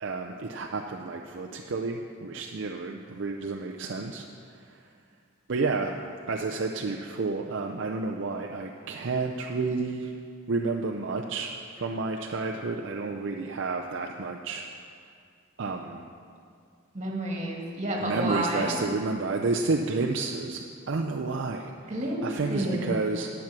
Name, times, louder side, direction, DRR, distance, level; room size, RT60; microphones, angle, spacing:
voice 1, 0.0-4.3 4.7-4.8 5.5-6.0 6.3-10.1 10.5-14.7 15.6-16.1 18.0-21.7 22.2-23.3, right 3 dB, 60° right, 1 dB, 0.5 m, -30 dB
voice 2, 16.9-18.7 21.9-23.0, right 1 dB, 35° right, -2 dB, 1.8 m, -30 dB
10.5 x 7.2 x 6.0 m, 2.2 s
head